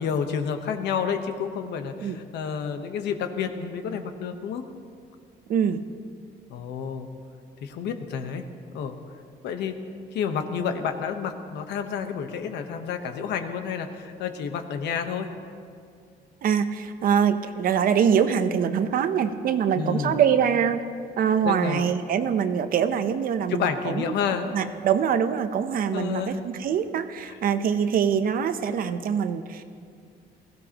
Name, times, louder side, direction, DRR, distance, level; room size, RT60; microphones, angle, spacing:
voice 1, 0.0-4.6 6.5-7.1 7.6-8.4 8.7-9.0 9.4-9.8 10.1-15.3 19.7-20.2 21.4-21.9 23.5-24.5 25.9-26.4 27.3-27.4, left 7 dB, 85° left, 7 dB, 1.1 m, -29 dB
voice 2, 5.5-5.8 16.4-20.8 21.2-24.2 24.5-29.6, right 8 dB, 55° right, 10 dB, 0.8 m, -24 dB
20.0 x 16.0 x 3.0 m, 2.2 s
cardioid pair, 140°, 17 cm